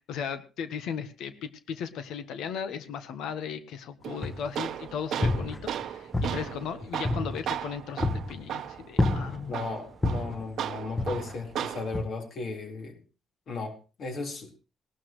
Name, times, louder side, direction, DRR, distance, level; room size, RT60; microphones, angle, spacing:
voice 1, 0.1-9.7, left 7 dB, 85° left, 11 dB, 1.1 m, -36 dB
Tools, 4.0-12.0, right 10 dB, 70° right, 0.8 m, -36 dB
sound 1, 4.2-4.7 5.0-5.8 6.1-7.6 8.0-8.4 9.0-9.6 10.0-10.4 11.0-11.5 11.9-12.0, left 2 dB, 15° left, 1.2 m, -29 dB
voice 2, 9.5-13.0 13.5-14.5, left 3 dB, 60° left, 2 dB, 4.2 m, -35 dB
19.0 x 12.5 x 3.2 m, 0.34 s
cardioid pair, 90°, 0 cm